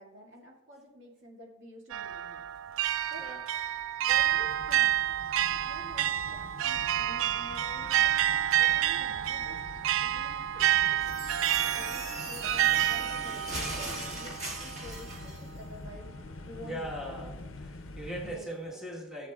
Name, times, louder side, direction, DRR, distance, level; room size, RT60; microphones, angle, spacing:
voice 1, 0.0-2.4 3.1-3.2 4.0-5.0 5.6-11.0 11.7-13.8 14.1-16.1 16.4-17.3 18.2-19.0, equal, 65° right, -2 dB, 2.2 m, -50 dB
sound 1, 1.9-14.9, right 12 dB, 80° right, 0.3 m, -29 dB
sound 2, 4.1-18.4, left 2 dB, 75° left, 0.6 m, -46 dB
sound 3, 11.0-15.4, right 1 dB, 35° right, 1.7 m, -39 dB
voice 2, 16.6-19.3, right 1 dB, 5° right, -4 dB, 1.4 m, -40 dB
16.0 x 7.7 x 2.4 m, 1.0 s
head